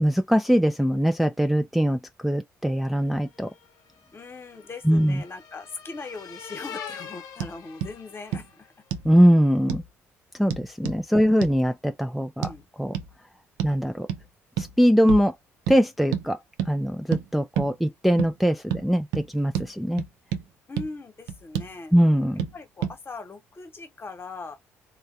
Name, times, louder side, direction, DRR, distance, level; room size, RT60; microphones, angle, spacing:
voice 1, 0.0-3.5 4.8-5.2 9.0-9.8 10.4-12.5 12.8-12.9 13.6-14.1 14.6-15.3 15.7-16.4 16.7-20.0 21.9-22.5, equal, ahead, 0.4 m, -22 dB
sound 1, 3.2-8.7, left 7 dB, 55° left, 0.7 m, -43 dB
voice 2, 4.1-8.7 11.1-11.2 12.4-12.6 20.7-21.9 22.5-24.6, left 3 dB, 30° left, 1.1 m, -40 dB
sound 2, 7.4-7.5 7.8-7.9 8.3-8.5 8.9-9.1 9.7-9.9 10.5-11.0 11.4-11.6 12.4-12.6 12.9-13.1 13.6-13.8 14.1-14.2 14.6-14.7 15.1-15.3 15.7-15.8 16.1-16.3 16.6-16.7 17.1-17.2 17.6-17.7 18.2-18.3 18.7-18.8 19.1-19.3 19.5-19.7 20.0-20.4 20.8-20.9 21.3-21.7 22.4-22.5 22.8-23.0, right 8 dB, 70° right, 0.5 m, -29 dB
3.2 x 2.2 x 2.6 m
figure-of-eight pair, 50°, 7 cm